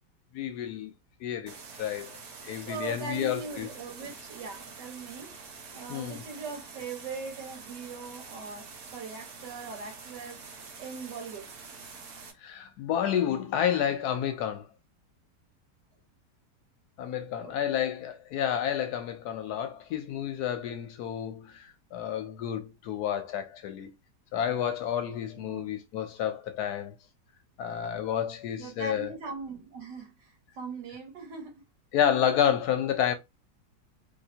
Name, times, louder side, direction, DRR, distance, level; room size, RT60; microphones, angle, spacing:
voice 1, 0.3-0.9 1.2-2.1 2.4-3.7 5.9-6.2 12.4-14.7 17.0-23.9 24.3-26.9 27.6-29.1 31.9-33.1, left 9 dB, 75° left, 1.0 m, -30 dB
sound 1, 1.5-12.3, right 4 dB, 65° right, 1.3 m, -46 dB
voice 2, 2.6-11.5 17.4-17.6 25.4-25.7 28.6-31.6, right 4 dB, 80° right, 1.8 m, -41 dB
3.3 x 2.9 x 2.7 m
omnidirectional pair, 1.9 m